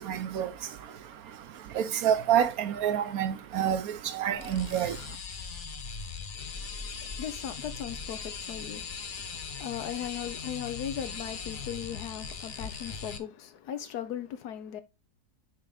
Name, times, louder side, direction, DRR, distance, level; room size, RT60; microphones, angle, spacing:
voice 1, 0.0-5.2, right 9 dB, 70° right, 1.1 m, -29 dB
sound 1, 4.3-13.2, left 5 dB, 45° left, 0.7 m, -39 dB
voice 2, 6.3-14.8, left 9 dB, 80° left, 1.4 m, -38 dB
6.6 x 4.8 x 4.0 m
omnidirectional pair, 1.6 m